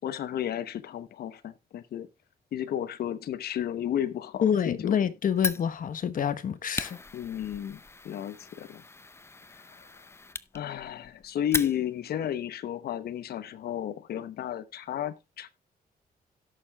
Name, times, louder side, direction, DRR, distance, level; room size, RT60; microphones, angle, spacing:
voice 1, 0.0-2.1 2.5-5.0 7.1-7.8 8.0-8.8 9.6-10.0 10.5-15.5, left 10 dB, 80° left, 0.9 m, -33 dB
voice 2, 4.4-7.0, left 8 dB, 60° left, 1.1 m, -27 dB
Fire, 5.4-12.2, left 3 dB, 15° left, 0.6 m, -38 dB
17.5 x 6.6 x 2.3 m
cardioid pair, 105°, 16 cm